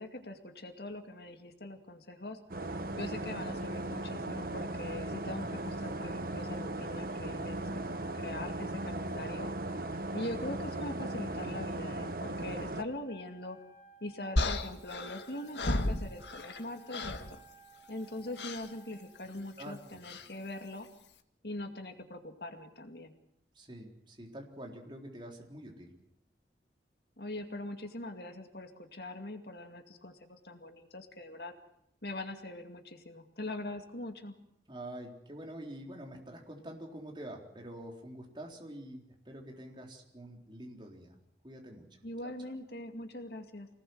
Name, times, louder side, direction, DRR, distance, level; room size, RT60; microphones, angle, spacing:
voice 1, 0.0-2.4 3.0-9.5 10.1-13.6 14.0-17.4 17.9-20.9 21.4-23.1 27.2-31.5 32.0-34.3 42.0-43.7, left 1 dB, 65° left, 6 dB, 2.3 m, -42 dB
sound 1, 2.5-12.8, right 2 dB, 55° right, 1.3 m, -37 dB
Wind instrument woodwind instrument, 13.0-19.2, right 4 dB, 40° left, 6.7 m, -58 dB
sound 2, 14.4-16.6 16.9-17.3 18.4-18.7 20.0-20.3, left 1 dB, 80° left, 1.8 m, -33 dB
voice 2, 19.6-20.0 23.5-25.9 34.7-41.2 41.4-41.9 42.2-42.3, right 1 dB, 25° right, 1 dB, 4.0 m, -46 dB
26.0 x 19.0 x 8.0 m, 0.75 s
head